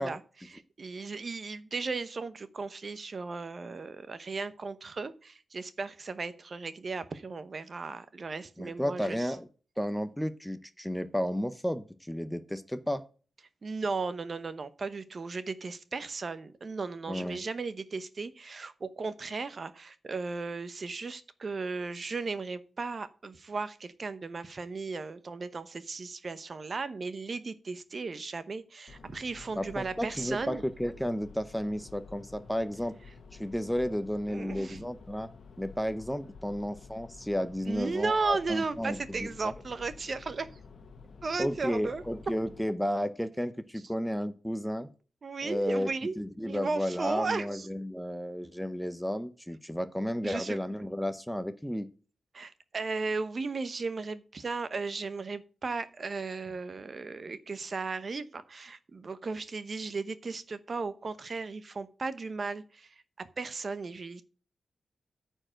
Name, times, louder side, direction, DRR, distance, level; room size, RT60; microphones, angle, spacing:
voice 1, 0.0-9.4 13.6-30.6 34.3-34.8 37.7-40.6 41.2-42.0 45.2-47.7 50.2-50.6 52.3-64.2, right 4 dB, 40° right, 13 dB, 0.8 m, -36 dB
voice 2, 8.6-9.5 9.8-13.0 17.1-17.4 29.6-33.0 33.3-35.3 35.6-39.5 41.4-44.9 45.4-45.9 46.2-51.9, equal, 5° left, 12 dB, 0.6 m, -33 dB
sound 1, 28.9-42.6, left 4 dB, 65° left, 1.3 m, -51 dB
9.5 x 4.6 x 7.5 m, 0.38 s
wide cardioid pair, 115°, 0 cm